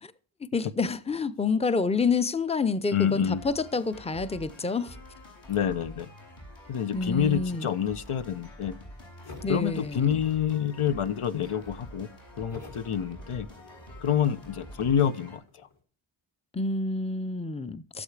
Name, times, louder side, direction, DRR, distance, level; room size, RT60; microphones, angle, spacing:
voice 1, 0.5-5.0 6.9-7.7 9.4-10.2 16.5-18.0, left 4 dB, 15° left, 0.6 m, -28 dB
voice 2, 2.9-3.4 5.5-6.1 6.7-8.8 9.5-12.1 12.4-13.5 14.0-15.7, left 8 dB, 85° left, 0.8 m, -27 dB
sound 1, 3.4-15.4, equal, 65° left, 5.4 m, -47 dB
sound 2, 9.2-10.8 11.1-11.8 12.5-15.8, left 3 dB, 50° left, 2.8 m, -50 dB
17.5 x 7.3 x 3.3 m
wide cardioid pair, 65°, 49 cm